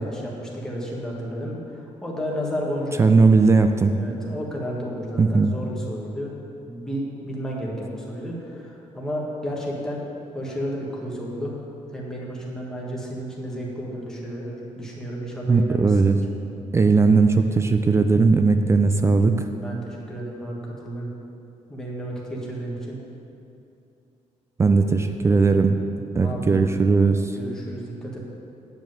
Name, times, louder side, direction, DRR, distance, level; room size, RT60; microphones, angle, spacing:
voice 1, 0.0-1.6 2.0-3.1 4.0-6.3 6.6-10.0 10.3-11.6 11.9-16.2 19.6-21.1 21.7-23.0 26.2-26.5 27.4-28.2, equal, 5° left, -4 dB, 1.6 m, -32 dB
voice 2, 3.0-3.9 5.2-5.5 15.5-16.2 16.7-19.3 24.6-25.8 26.2-27.3, right 4 dB, 20° right, 7 dB, 0.4 m, -18 dB
9.5 x 5.1 x 7.6 m, 2.8 s
cardioid pair, 160°, 13 cm